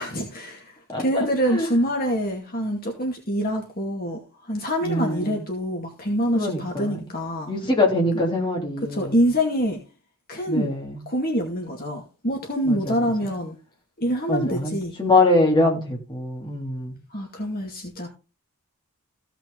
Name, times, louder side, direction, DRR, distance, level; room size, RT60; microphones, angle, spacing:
voice 1, 0.0-7.5 8.9-9.8 10.3-10.7 11.1-13.6 14.0-14.9 17.1-18.1, equal, 40° left, 2.3 m, -25 dB
voice 2, 0.9-1.7 4.8-5.4 6.3-7.0 7.5-9.2 10.5-11.0 12.6-12.9 14.3-16.9, left 2 dB, 20° left, 3.1 m, -23 dB
15.5 x 6.0 x 3.9 m
head